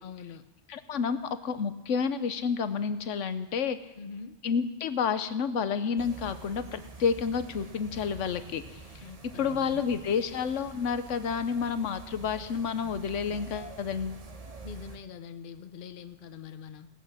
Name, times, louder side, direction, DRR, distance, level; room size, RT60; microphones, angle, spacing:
voice 1, 0.0-0.4 4.0-4.4 9.0-9.8 14.6-16.9, left 6 dB, 50° left, 9 dB, 0.9 m, -44 dB
voice 2, 0.7-3.8 4.4-8.6 9.2-14.2, left 6 dB, 80° left, 11 dB, 1.2 m, -30 dB
sound 1, 6.0-15.0, right 3 dB, 30° right, 1.0 m, -47 dB
18.5 x 8.3 x 6.4 m, 1.0 s
omnidirectional pair, 1.3 m